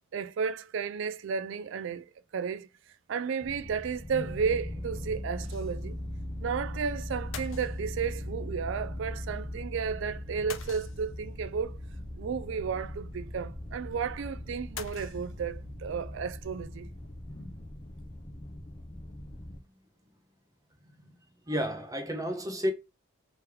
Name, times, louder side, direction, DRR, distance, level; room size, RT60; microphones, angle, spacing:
voice 1, 0.1-2.7 3.1-6.0 6.4-11.8 12.2-16.9, right 6 dB, 65° right, 0.3 m, -33 dB
sound 1, 3.4-19.6, left 1 dB, 25° left, 0.6 m, -40 dB
sound 2, 5.4-6.0 6.3-6.4 7.3-8.2 10.5-11.4 14.8-15.7, left 7 dB, 75° left, 0.6 m, -44 dB
voice 2, 21.5-22.7, equal, 15° right, 0.6 m, -31 dB
3.3 x 3.0 x 3.4 m
head